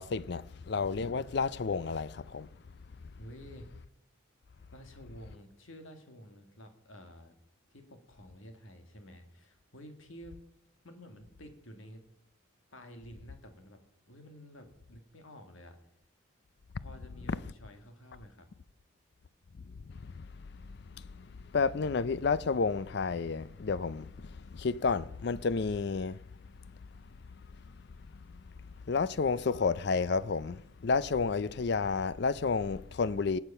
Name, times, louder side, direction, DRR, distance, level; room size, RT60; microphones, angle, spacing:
voice 1, 0.0-2.5 3.0-3.1 17.3-17.5 19.5-33.4, left 4 dB, 55° left, 0.4 m, -32 dB
voice 2, 3.2-3.7 4.7-7.3 7.7-10.4 10.8-12.0 12.7-13.8 14.1-15.8 16.8-18.5, equal, 75° left, 2.0 m, -51 dB
19.0 x 8.1 x 5.6 m
head